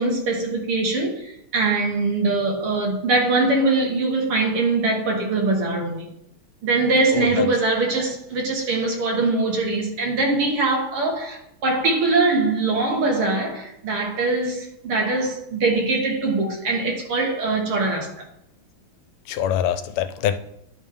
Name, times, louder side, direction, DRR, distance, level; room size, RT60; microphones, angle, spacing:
voice 1, 0.0-6.1 6.6-18.1, right 3 dB, 80° right, 2.5 m, -22 dB
voice 2, 7.1-7.5 19.3-20.4, left 10 dB, 85° left, 1.5 m, -24 dB
10.5 x 5.3 x 3.3 m
omnidirectional pair, 2.4 m